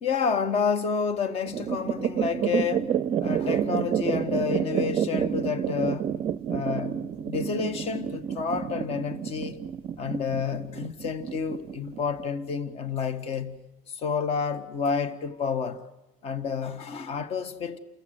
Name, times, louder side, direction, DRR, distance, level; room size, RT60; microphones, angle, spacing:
voice 1, 0.0-6.1 6.5-9.6 10.0-15.9 16.2-17.8, left 6 dB, 35° left, 1.7 m, -30 dB
sound 1, 1.5-12.2, right 9 dB, 30° right, 0.7 m, -29 dB
29.5 x 14.5 x 9.4 m
supercardioid pair, 150°, 18 cm